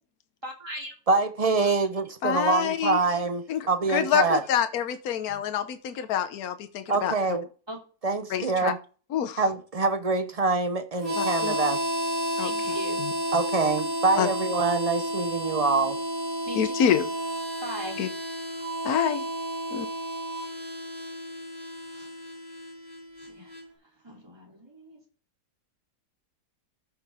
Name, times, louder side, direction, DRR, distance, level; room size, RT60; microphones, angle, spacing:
voice 1, 0.4-1.0 7.7-7.8 12.4-13.0 16.4-16.7 17.6-18.0 21.9-22.1 23.2-23.5 24.0-25.0, right 1 dB, 15° right, 3.0 m, -39 dB
voice 2, 1.1-4.4 6.9-7.5 8.0-8.8 9.4-11.8 13.3-16.0, right 3 dB, 35° right, 0.7 m, -25 dB
voice 3, 2.2-3.0 3.5-7.4 8.3-8.7 9.1-9.4 11.1-11.5 12.4-13.1 14.2-14.3 16.6-17.1 18.0-18.1 18.8-19.2 19.7-19.9, left 9 dB, 70° left, 1.3 m, -27 dB
Harmonica, 11.0-23.6, equal, 60° right, 5.2 m, -31 dB
13.5 x 6.8 x 3.5 m
omnidirectional pair, 1.7 m